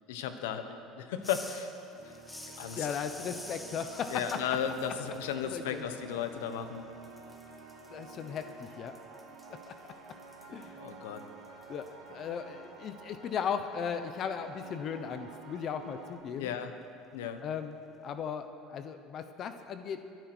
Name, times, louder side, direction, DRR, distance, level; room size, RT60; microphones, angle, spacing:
voice 1, 0.1-1.7 2.6-2.9 4.1-6.9 10.8-11.2 16.4-16.7 17.1-17.4, left 8 dB, 90° left, 9 dB, 1.2 m, -35 dB
sound 1, 1.2-6.8 7.0-11.9, left 1 dB, 10° left, 1.8 m, -50 dB
sound 2, 1.9-16.1, right 4 dB, 70° right, 3.0 m, -50 dB
voice 2, 2.8-4.4 5.4-5.8 7.9-8.9 9.5-9.7 10.5-10.8 11.7-16.5 17.4-20.1, left 7 dB, 45° left, 9 dB, 0.9 m, -37 dB
23.5 x 9.4 x 6.2 m, 2.7 s
supercardioid pair, 105°, 0 cm